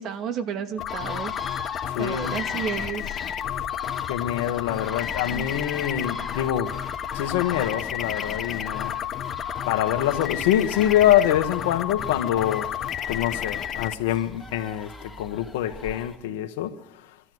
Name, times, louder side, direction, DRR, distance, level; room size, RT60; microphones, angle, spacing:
voice 1, 0.0-1.3 2.0-3.2 5.3-5.5, right 7 dB, 55° right, 2.3 m, -32 dB
sound 1, 0.8-13.9, left 10 dB, 50° left, 1.4 m, -31 dB
sound 2, 0.9-16.2, left 3 dB, 15° left, 3.1 m, -41 dB
voice 2, 1.9-2.7 4.1-6.7 7.1-8.9 9.7-12.7 13.1-16.7, left 11 dB, 85° left, 1.7 m, -25 dB
25.0 x 13.0 x 8.1 m
supercardioid pair, 90°, 0 cm